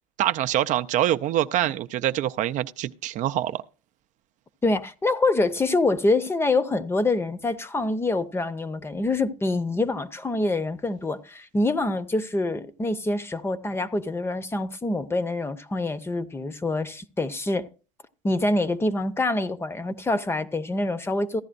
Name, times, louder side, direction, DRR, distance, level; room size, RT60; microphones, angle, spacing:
voice 1, 0.2-3.6, right 12 dB, 50° right, 0.5 m, -25 dB
voice 2, 4.6-17.7 18.2-21.4, left 2 dB, 15° left, 0.8 m, -25 dB
15.0 x 10.5 x 2.6 m
supercardioid pair, 105°, 16 cm